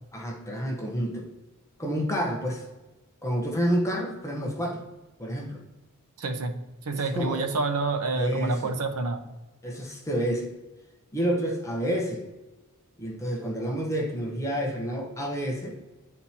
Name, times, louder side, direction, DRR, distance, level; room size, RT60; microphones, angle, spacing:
voice 1, 0.1-1.3 1.8-2.7 3.2-4.8 5.2-5.6 6.9-7.5 8.2-8.8 9.6-10.5 11.1-12.3 13.0-15.8, equal, 15° left, -1 dB, 0.9 m, -29 dB
voice 2, 6.2-6.5 6.8-9.2, right 3 dB, 75° right, 5 dB, 0.7 m, -28 dB
10.5 x 4.3 x 2.8 m, 1.1 s
head